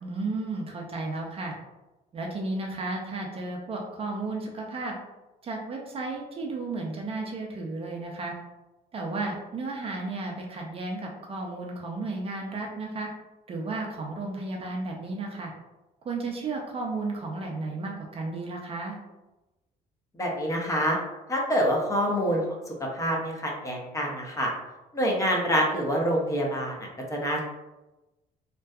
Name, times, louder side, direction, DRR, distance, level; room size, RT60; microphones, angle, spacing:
voice 1, 0.0-1.6 2.1-5.0 5.4-8.3 8.9-13.1 13.5-15.5 16.0-19.0, right 3 dB, 35° right, 0 dB, 0.4 m, -33 dB
voice 2, 20.1-21.0 21.3-22.4 22.9-24.5 24.9-27.4, equal, 20° left, -1 dB, 0.5 m, -26 dB
2.6 x 2.2 x 2.2 m, 1.0 s
cardioid pair, 110°, 17 cm